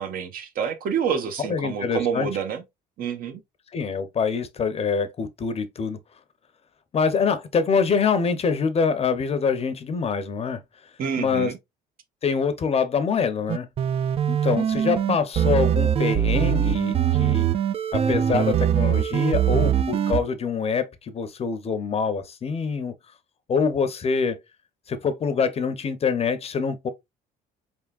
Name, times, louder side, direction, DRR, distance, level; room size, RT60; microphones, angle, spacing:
voice 1, 0.0-2.6 3.0-3.4 11.0-11.6, right 7 dB, 60° right, 0.9 m, -28 dB
voice 2, 1.5-2.3 3.7-6.0 6.9-10.6 11.2-11.5 12.2-13.7 14.3-17.5 17.9-22.9 23.5-24.4 24.9-26.9, left 5 dB, 35° left, 0.7 m, -25 dB
sound 1, 13.5-20.2, right 9 dB, 35° right, 0.4 m, -22 dB
4.1 x 3.5 x 2.3 m
cardioid pair, 110°, 17 cm